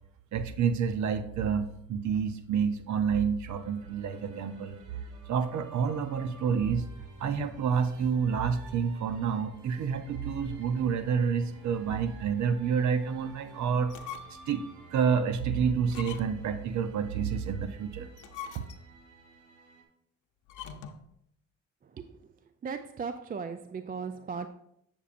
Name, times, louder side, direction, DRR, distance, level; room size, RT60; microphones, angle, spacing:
voice 1, 0.3-4.8 5.3-6.9 7.2-13.9 14.5-14.6 14.9-18.1 18.5-18.6, right 6 dB, 70° right, 10 dB, 0.7 m, -29 dB
sound 1, 3.5-19.8, right 2 dB, 85° right, 1.3 m, -53 dB
sound 2, 13.8-14.5 15.0-15.1 15.9-16.6 18.0-19.1 20.5-21.1, left 8 dB, 80° left, 0.7 m, -44 dB
voice 2, 22.6-24.5, right 5 dB, 30° right, 10 dB, 0.4 m, -37 dB
8.2 x 7.1 x 2.5 m, 0.73 s
cardioid pair, 90°, 30 cm